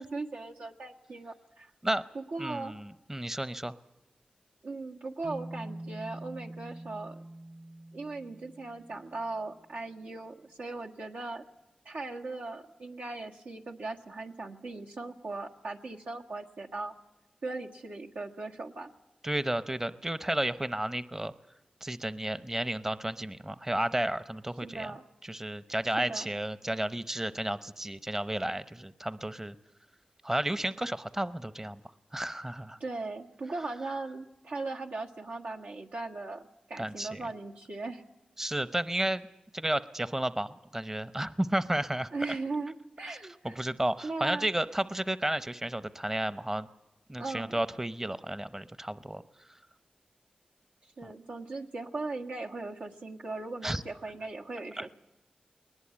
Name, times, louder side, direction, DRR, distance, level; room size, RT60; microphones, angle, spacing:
voice 1, 0.0-1.7 2.1-2.7 4.6-7.2 7.9-11.4 11.8-16.9 17.4-18.9 24.6-25.0 26.0-26.3 32.8-38.0 42.1-43.6 44.0-44.5 47.2-47.6 51.0-54.9, right 3 dB, 85° right, 0 dB, 1.6 m, -38 dB
voice 2, 2.4-3.7 19.2-21.3 21.8-24.9 25.2-29.6 30.2-31.8 32.1-32.8 36.8-37.2 38.4-39.3 39.5-42.4 43.1-43.2 43.4-46.7 47.1-49.2 51.0-51.1 53.6-53.8 54.8-54.9, right 1 dB, 15° right, 14 dB, 0.7 m, -32 dB
sound 1, 5.2-9.5, right 1 dB, 50° right, 3.1 m, -45 dB
20.5 x 19.5 x 8.6 m, 0.95 s
cardioid pair, 65°, 3 cm